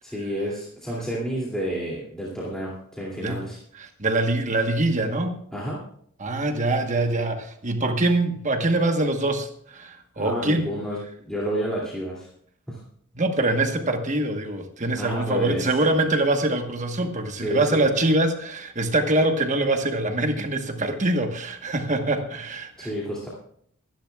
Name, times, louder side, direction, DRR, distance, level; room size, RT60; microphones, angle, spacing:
voice 1, 0.0-3.6 5.5-5.8 10.2-11.0 11.2-12.3 12.7-12.8 15.0-15.7 17.4-17.8 22.8-23.3, equal, 5° left, -7 dB, 2.6 m, -30 dB
voice 2, 3.8-5.4 6.2-10.7 13.2-22.9, right 2 dB, 35° right, 5 dB, 1.2 m, -24 dB
23.5 x 10.5 x 2.4 m, 0.63 s
head